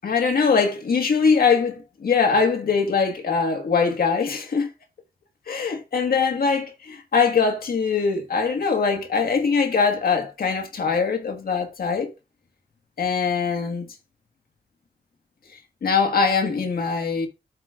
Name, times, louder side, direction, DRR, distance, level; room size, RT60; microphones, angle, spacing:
voice 1, 0.0-4.7 5.5-12.1 13.0-13.9 15.8-17.3, left 5 dB, 65° left, 1.7 m, -22 dB
13.0 x 4.9 x 2.5 m
wide cardioid pair, 150°, 16 cm